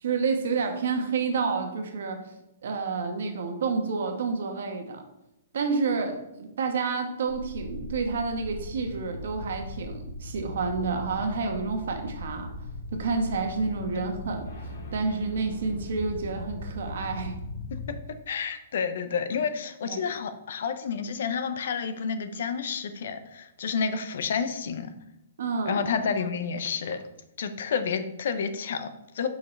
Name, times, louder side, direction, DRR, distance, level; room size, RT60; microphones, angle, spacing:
voice 1, 0.0-2.3 2.6-5.0 5.5-12.5 12.9-14.5 14.9-17.4 19.8-20.0 25.4-25.8, right 4 dB, 65° right, 5 dB, 1.2 m, -29 dB
sound 1, 7.3-17.9, left 1 dB, 85° left, 2.1 m, -39 dB
voice 2, 18.3-24.9 25.6-27.0 27.4-29.3, left 6 dB, 60° left, 10 dB, 0.7 m, -30 dB
7.0 x 5.6 x 3.3 m, 0.89 s
hypercardioid pair, 170°, 0 cm